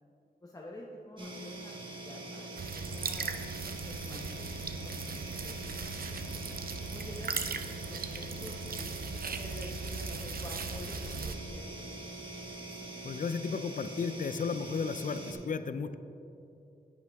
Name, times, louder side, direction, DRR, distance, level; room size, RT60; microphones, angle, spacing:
voice 1, 0.4-3.4 3.9-5.8 6.1-6.4 6.9-8.9 9.4-11.9, left 1 dB, 20° left, -2 dB, 0.9 m, -49 dB
sound 1, 1.2-15.3, right 2 dB, 25° right, 1.8 m, -44 dB
sound 2, 2.6-11.3, right 4 dB, 55° right, 0.6 m, -38 dB
voice 2, 13.0-16.0, left 5 dB, 50° left, 12 dB, 0.4 m, -34 dB
10.5 x 8.6 x 3.5 m, 2.8 s
wide cardioid pair, 95°, 18 cm